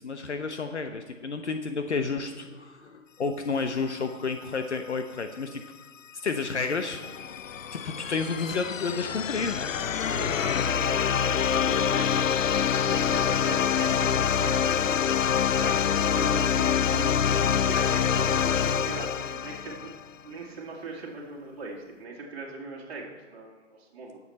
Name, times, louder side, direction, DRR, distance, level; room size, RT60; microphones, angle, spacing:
voice 1, 0.0-5.6 6.2-7.0 7.7-9.7, left 4 dB, 65° left, 7 dB, 0.9 m, -31 dB
sound 1, 6.3-20.1, left 8 dB, 85° left, 0.5 m, -26 dB
voice 2, 10.1-12.2 12.9-15.2 15.6-17.1 17.7-19.9 20.2-24.2, right 3 dB, 35° right, -6 dB, 1.9 m, -40 dB
20.0 x 7.2 x 4.2 m, 1.4 s
figure-of-eight pair, 130°, 38 cm